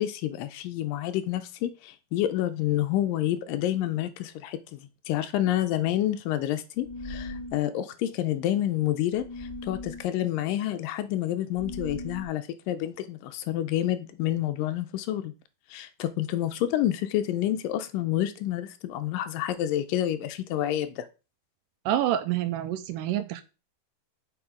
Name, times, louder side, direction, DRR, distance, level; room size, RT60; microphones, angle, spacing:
voice 1, 0.0-15.3 15.7-21.1, left 12 dB, 80° left, 10 dB, 2.0 m, -28 dB
sound 1, 6.8-7.6 9.2-10.0 11.6-12.3, left 2 dB, 5° left, 3.4 m, -38 dB
voice 2, 21.9-23.4, right 12 dB, 85° right, 10 dB, 1.9 m, -27 dB
7.1 x 4.8 x 5.0 m, 0.31 s
omnidirectional pair, 4.4 m